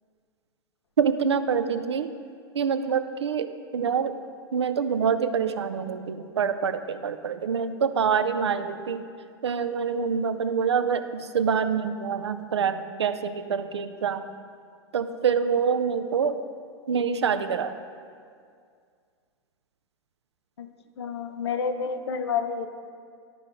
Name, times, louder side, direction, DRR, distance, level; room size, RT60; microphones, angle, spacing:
voice 1, 1.0-2.1 2.5-4.2 4.5-9.0 9.4-14.2 14.9-16.4 16.9-17.8, right 6 dB, 75° right, 10 dB, 0.5 m, -26 dB
voice 2, 21.0-22.7, left 6 dB, 75° left, 8 dB, 0.5 m, -29 dB
12.5 x 4.5 x 3.7 m, 2.2 s
figure-of-eight pair, 95°, 14 cm